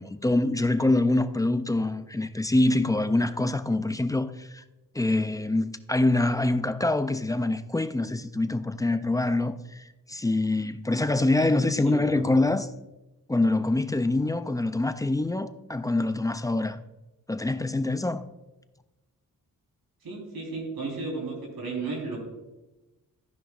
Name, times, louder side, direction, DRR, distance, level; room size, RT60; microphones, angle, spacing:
voice 1, 0.0-4.6 4.9-12.7 13.3-16.8 17.3-18.2, left 2 dB, 10° left, 0.3 m, -25 dB
voice 2, 11.4-12.2 20.0-22.2, right 3 dB, 90° right, 3.8 m, -34 dB
14.0 x 10.0 x 2.4 m
wide cardioid pair, 155°, 35 cm